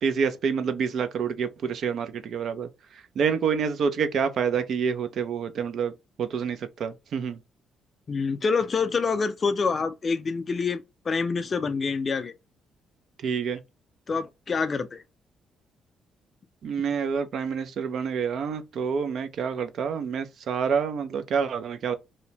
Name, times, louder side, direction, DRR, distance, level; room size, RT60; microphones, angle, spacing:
voice 1, 0.0-7.4 13.2-13.6 16.6-21.9, right 6 dB, 65° right, 0.4 m, -28 dB
voice 2, 8.1-12.3 14.1-15.0, left 4 dB, 40° left, 0.3 m, -26 dB
2.7 x 2.0 x 2.7 m
cardioid pair, 90°, 0 cm